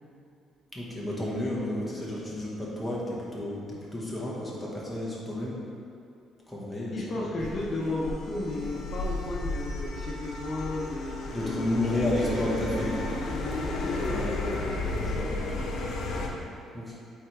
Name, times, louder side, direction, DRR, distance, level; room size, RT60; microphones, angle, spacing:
voice 1, 0.7-5.6 6.5-7.0 11.3-13.1 14.0-14.6 14.9-15.5 16.7-16.9, left 1 dB, ahead, -6 dB, 1.5 m, -31 dB
voice 2, 6.9-11.7 12.2-12.3 13.4-14.3, left 2 dB, 45° left, -4 dB, 0.9 m, -34 dB
sound 1, 7.4-16.3, left 2 dB, 70° left, 1.0 m, -33 dB
8.4 x 4.4 x 3.4 m, 2.5 s
cardioid pair, 120°, 0 cm